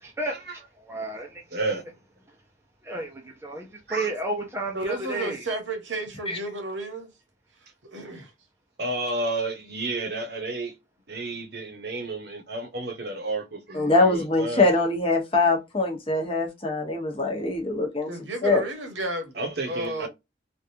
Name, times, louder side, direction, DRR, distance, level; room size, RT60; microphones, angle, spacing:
voice 1, 0.0-1.4 2.8-5.4, right 2 dB, 15° right, 0.6 m, -32 dB
voice 2, 1.5-1.8 3.9-4.1 8.8-10.7 11.1-14.7 19.3-20.1, right 2 dB, 60° right, 1.0 m, -31 dB
voice 3, 4.7-7.1 7.8-8.3 18.1-19.4 19.6-20.1, right 2 dB, 75° right, 1.2 m, -32 dB
voice 4, 13.7-18.1 18.4-18.6, left 2 dB, 30° left, 1.0 m, -23 dB
3.3 x 2.5 x 2.7 m
head